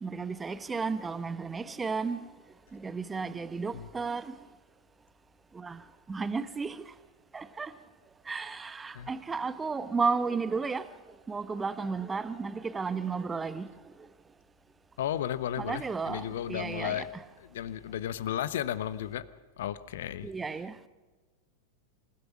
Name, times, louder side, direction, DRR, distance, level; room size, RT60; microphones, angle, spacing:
voice 1, 0.0-2.2 2.7-4.3 5.5-5.8 6.1-6.8 7.3-7.7 8.3-10.9 11.3-13.7 15.6-17.2 20.2-20.7, right 4 dB, 15° right, 1.1 m, -33 dB
voice 2, 15.0-17.1 17.4-19.2 19.6-20.3, left 11 dB, 60° left, 1.0 m, -34 dB
27.5 x 16.5 x 5.9 m
figure-of-eight pair, 90°, 0 cm